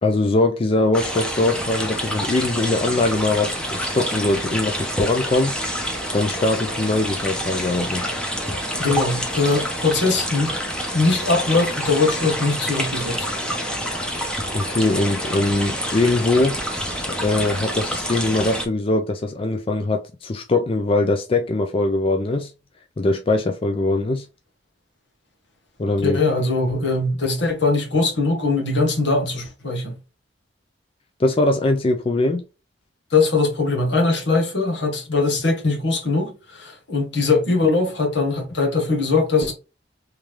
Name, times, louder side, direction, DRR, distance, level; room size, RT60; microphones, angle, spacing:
voice 1, 0.0-5.6 6.1-8.1 14.5-16.8 17.1-22.5 23.0-24.3 25.8-26.2 31.2-32.4, left 2 dB, 30° left, 0.4 m, -21 dB
sound 1, 0.9-18.7, equal, 5° left, 0.8 m, -27 dB
voice 2, 8.8-10.6 10.9-13.3 26.0-30.0 33.1-39.5, left 3 dB, 70° left, 1.4 m, -21 dB
3.5 x 3.1 x 3.1 m
head